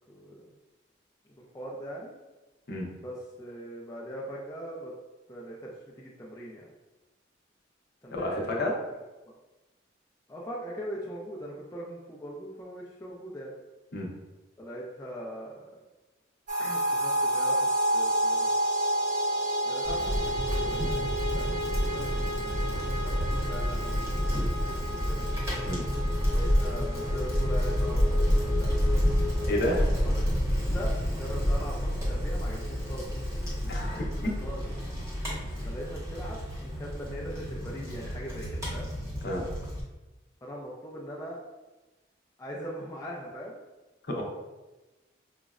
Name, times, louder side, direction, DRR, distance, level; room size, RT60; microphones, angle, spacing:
voice 1, 0.1-0.5 1.4-2.1 2.9-4.9 5.3-6.7 8.0-8.8 9.2-9.3 10.3-13.5 14.6-15.7 16.6-18.5 19.6-22.5 22.9-24.2 24.7-25.2 26.3-28.2 28.6-28.7 30.0-30.2 30.5-33.1 33.9-34.1 34.4-34.6 35.7-38.9 40.4-41.4 42.4-43.6, equal, 15° left, -5 dB, 0.3 m, -41 dB
voice 2, 8.1-8.7 13.9-14.1 25.7-25.8 29.5-29.9 33.7-34.4 39.2-39.4 44.0-44.2, left 1 dB, 55° left, -2 dB, 0.6 m, -30 dB
sound 1, 16.5-29.5, right 1 dB, 45° right, 0.6 m, -31 dB
Bicycle, 19.8-39.8, equal, 15° right, 0.8 m, -29 dB
4.9 x 2.0 x 2.4 m, 1.1 s
head